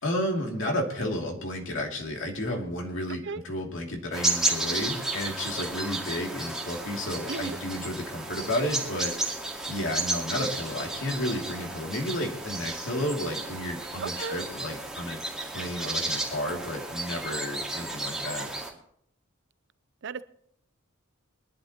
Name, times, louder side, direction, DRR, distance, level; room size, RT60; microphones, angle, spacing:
voice 1, 0.0-9.1 9.7-15.2 15.5-18.5, left 1 dB, 65° left, 1 dB, 2.6 m, -32 dB
sound 1, 4.1-18.7, right 2 dB, 5° right, 2.3 m, -33 dB
voice 2, 14.0-14.4 20.0-20.2, right 4 dB, 60° right, 16 dB, 0.6 m, -34 dB
23.0 x 11.5 x 2.9 m, 0.68 s
head